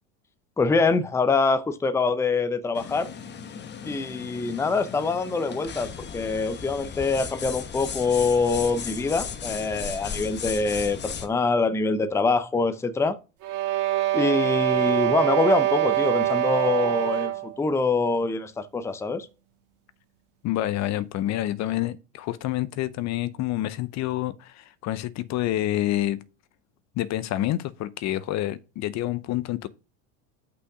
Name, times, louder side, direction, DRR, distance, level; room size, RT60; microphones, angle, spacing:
voice 1, 0.6-3.1 3.8-13.2 14.1-19.3, left 4 dB, 5° left, 0.6 m, -24 dB
sound 1, 2.7-11.3, left 7 dB, 25° left, 1.0 m, -36 dB
sound 2, 13.4-17.6, right 14 dB, 50° right, 1.5 m, -24 dB
voice 2, 20.4-26.2 27.0-29.7, left 14 dB, 45° left, 0.7 m, -28 dB
6.1 x 5.8 x 4.8 m
supercardioid pair, 105°, 39 cm